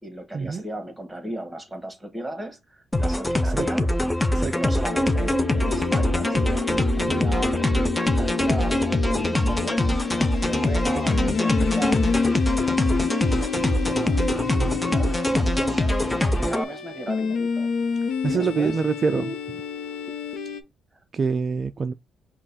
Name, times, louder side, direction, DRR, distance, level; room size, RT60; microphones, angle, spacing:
voice 1, 0.0-3.9 4.5-12.0 12.5-16.0 16.4-17.7 18.2-18.8, right 1 dB, 10° right, 1.5 m, -36 dB
sound 1, 2.9-16.6, left 1 dB, 10° left, 0.6 m, -23 dB
sound 2, 4.9-20.6, left 5 dB, 70° left, 0.9 m, -29 dB
voice 2, 7.0-7.3 14.4-14.9 18.2-19.6 21.1-21.9, right 5 dB, 40° right, 0.3 m, -26 dB
5.3 x 2.4 x 4.0 m
cardioid pair, 90°, 0 cm